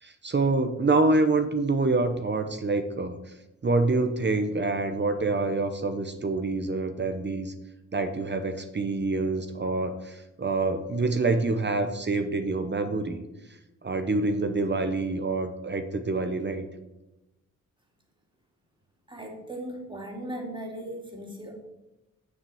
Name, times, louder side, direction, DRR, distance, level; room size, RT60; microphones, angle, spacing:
voice 1, 0.0-3.3 3.6-7.5 7.9-13.2 13.5-16.6, right 3 dB, 35° right, 7 dB, 0.9 m, -26 dB
voice 2, 19.1-21.6, right 1 dB, 15° right, 0 dB, 2.8 m, -37 dB
7.3 x 6.5 x 7.1 m, 0.99 s
cardioid pair, 80°, 31 cm